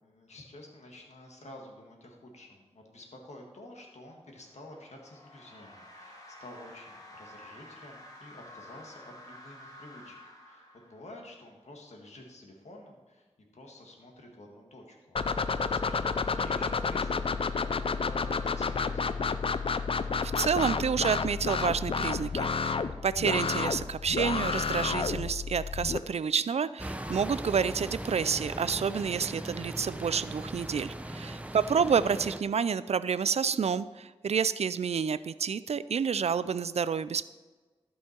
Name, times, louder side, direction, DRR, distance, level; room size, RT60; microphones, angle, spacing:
voice 1, 0.0-13.3 13.5-19.5 31.5-32.1, left 1 dB, 90° left, 1 dB, 1.6 m, -50 dB
sound 1, 4.3-11.3, left 1 dB, 35° left, 1.8 m, -51 dB
sound 2, 15.2-26.0, left 5 dB, 55° left, 0.4 m, -30 dB
voice 2, 20.2-22.8 23.0-37.3, right 6 dB, 70° right, 16 dB, 0.4 m, -29 dB
sound 3, 26.8-32.4, right 1 dB, 10° right, 0.6 m, -39 dB
12.5 x 5.6 x 4.4 m, 1.3 s
wide cardioid pair, 70°, 11 cm